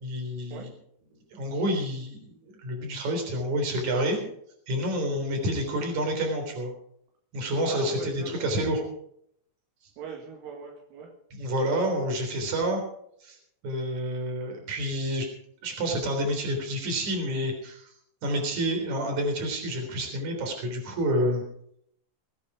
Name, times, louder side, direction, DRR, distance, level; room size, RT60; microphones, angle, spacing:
voice 1, 0.0-0.7 1.3-4.2 4.7-6.7 7.3-8.8 11.3-12.8 13.2-13.4 13.6-15.3 15.6-17.9 18.2-21.4, equal, 40° right, 3 dB, 4.6 m, -28 dB
voice 2, 7.6-8.5 10.0-11.1 12.2-12.3, right 5 dB, 80° right, 2 dB, 4.3 m, -40 dB
21.0 x 9.6 x 4.9 m, 0.69 s
omnidirectional pair, 5.7 m